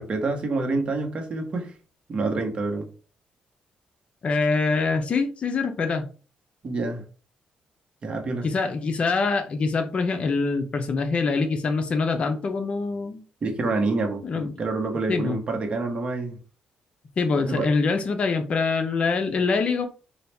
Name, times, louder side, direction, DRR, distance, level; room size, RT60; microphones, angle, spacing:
voice 1, 0.0-1.7 2.1-2.9 6.6-7.0 8.0-8.5 13.4-16.4 17.4-17.7, right 3 dB, 40° right, 1.0 m, -27 dB
voice 2, 4.2-6.1 8.4-13.2 14.2-14.5 15.1-15.4 17.2-19.9, left 4 dB, 45° left, 0.6 m, -24 dB
4.0 x 2.3 x 3.3 m
cardioid pair, 110°, 3 cm